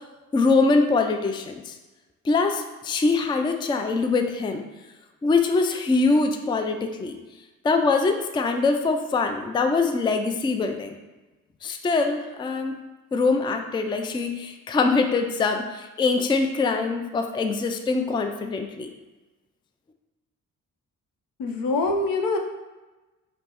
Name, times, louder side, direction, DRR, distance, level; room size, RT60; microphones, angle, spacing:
voice 1, 0.3-1.7 2.3-4.6 5.2-7.2 7.6-10.9 11.6-12.7 13.1-18.9, left 3 dB, 15° left, 5 dB, 0.3 m, -23 dB
voice 2, 21.4-22.4, left 3 dB, 75° left, 3 dB, 0.6 m, -24 dB
5.1 x 2.0 x 2.9 m, 1.1 s
supercardioid pair, 60°, 35 cm